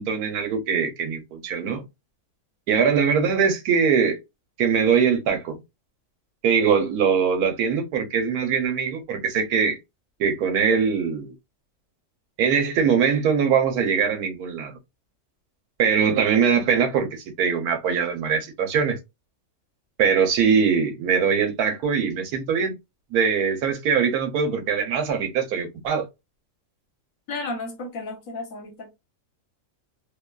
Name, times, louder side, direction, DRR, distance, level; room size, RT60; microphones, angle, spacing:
voice 1, 0.0-1.8 2.7-4.2 4.6-5.6 6.4-9.8 10.2-11.3 12.4-14.7 15.8-19.0 20.0-22.7 23.1-26.1, right 6 dB, 85° right, 1.2 m, -22 dB
voice 2, 27.3-28.9, left 3 dB, 65° left, 1.2 m, -33 dB
2.9 x 2.3 x 2.2 m
omnidirectional pair, 1.6 m